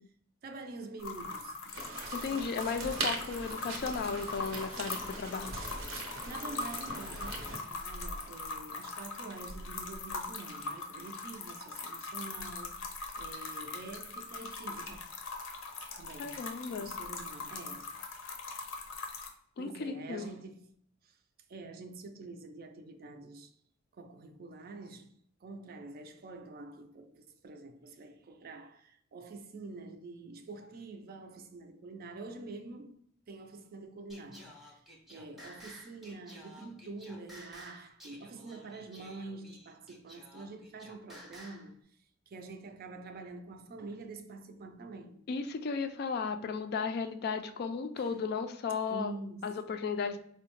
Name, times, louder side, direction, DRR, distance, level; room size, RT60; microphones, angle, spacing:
voice 1, 0.4-2.0 6.2-15.1 16.0-16.4 16.8-17.9 19.6-20.7 21.0-21.2 21.5-23.5 23.9-25.1 25.4-32.9 33.3-34.8 35.1-41.7 42.3-45.2 48.0-48.2 48.9-49.5, right 3 dB, 50° right, 0.4 m, -46 dB
sound 1, 1.0-19.3, left 3 dB, 90° left, 0.6 m, -41 dB
sound 2, 1.7-7.6, right 3 dB, 85° right, 0.7 m, -40 dB
voice 2, 2.1-5.6 16.2-16.9 19.6-20.3 45.3-49.1 49.4-50.2, left 5 dB, 50° left, 0.3 m, -35 dB
Singing, 34.1-41.7, equal, ahead, 0.6 m, -53 dB
4.6 x 2.1 x 2.9 m
head